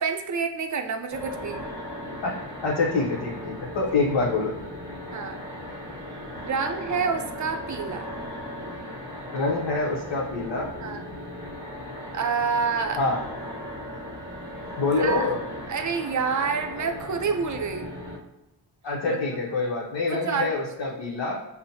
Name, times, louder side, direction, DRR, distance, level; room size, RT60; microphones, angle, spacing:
voice 1, 0.0-1.6 5.1-5.4 6.4-8.1 10.8-11.0 12.1-13.0 14.9-15.3 15.7-17.9 19.1-19.2 19.6-19.7 20.1-21.0, right 5 dB, 40° right, 6 dB, 0.5 m, -28 dB
sound 1, 1.1-18.2, left 1 dB, 5° left, 1.4 m, -37 dB
voice 2, 2.6-4.5 9.3-10.7 13.0-13.2 14.8-15.4 18.8-21.4, left 3 dB, 65° left, -4 dB, 0.8 m, -26 dB
5.4 x 2.1 x 2.7 m, 0.97 s
cardioid pair, 65°, 44 cm